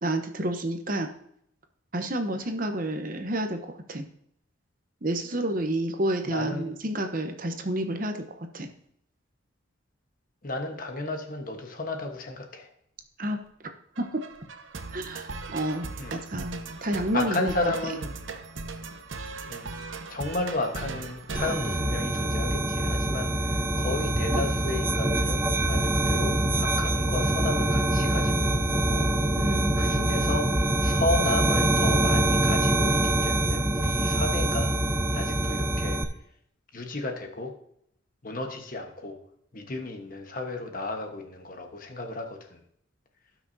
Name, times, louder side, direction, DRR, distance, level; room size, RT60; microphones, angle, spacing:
voice 1, 0.0-1.1 1.9-4.1 5.0-8.2 8.5-8.7 13.2-13.7 14.0-14.2 14.9-17.7 29.4-29.7, right 1 dB, 45° right, 6 dB, 0.9 m, -30 dB
voice 2, 6.2-6.6 10.4-12.7 16.0-16.1 17.1-18.1 19.5-19.7 20.1-29.1 29.4-36.0 36.7-37.5 38.2-39.2 39.5-42.6, left 2 dB, 45° left, 3 dB, 1.2 m, -33 dB
sound 1, 14.0-22.5, right 3 dB, 70° right, 0.9 m, -39 dB
sound 2, 21.3-36.0, right 1 dB, 10° right, 0.6 m, -24 dB
16.5 x 6.0 x 2.7 m, 0.71 s
head